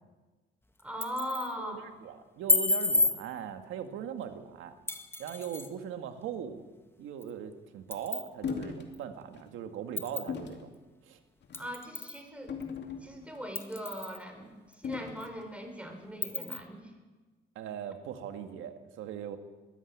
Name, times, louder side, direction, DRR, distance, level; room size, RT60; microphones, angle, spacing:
sound 1, 0.8-1.5 2.5-3.2 4.9-5.7 7.2-7.3 7.9-8.3 8.9-9.0 10.0-10.3 11.5-12.2 12.6-12.7 13.5-14.2 14.7-14.8 15.2-15.3 16.2-16.6, left 3 dB, 10° left, 1.8 m, -30 dB
voice 1, 0.8-1.9 11.5-12.6 13.0-14.5 14.8-16.8, equal, 5° right, 5 dB, 5.1 m, -39 dB
voice 2, 1.6-4.7 5.2-6.7 7.0-10.8 11.1-11.2 17.6-19.4, right 8 dB, 90° right, 7 dB, 1.9 m, -40 dB
sound 2, 8.4-8.9 9.3-9.5 10.3-10.6 11.4-11.7 12.5-13.4 14.8-15.3, left 6 dB, 60° left, 2.6 m, -38 dB
21.0 x 14.5 x 8.6 m, 1.3 s
cardioid pair, 90°, 20 cm